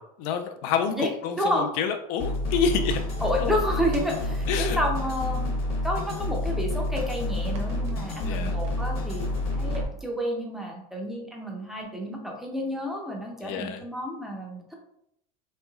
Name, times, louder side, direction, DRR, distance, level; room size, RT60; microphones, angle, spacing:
voice 1, 0.2-3.0 3.4-3.6 4.5-4.8 8.2-8.6 13.4-13.8, left 6 dB, 65° left, 6 dB, 0.4 m, -28 dB
sound 1, 2.2-9.8, left 1 dB, 30° left, 0.8 m, -29 dB
sound 2, 2.5-4.7 5.6-5.7 6.1-6.2 6.9-7.1 7.5-9.8, right 3 dB, 85° right, 0.8 m, -45 dB
sound 3, 2.8-3.0 3.8-4.1 5.0-5.2 5.9-6.2 6.9-7.1 7.5-7.7 8.6-8.8 9.7-9.9, equal, 40° right, 0.7 m, -41 dB
voice 2, 3.2-5.5 5.8-9.3 9.6-14.6, equal, ahead, -1 dB, 0.5 m, -30 dB
3.1 x 3.0 x 2.3 m, 0.74 s
cardioid pair, 155°, 19 cm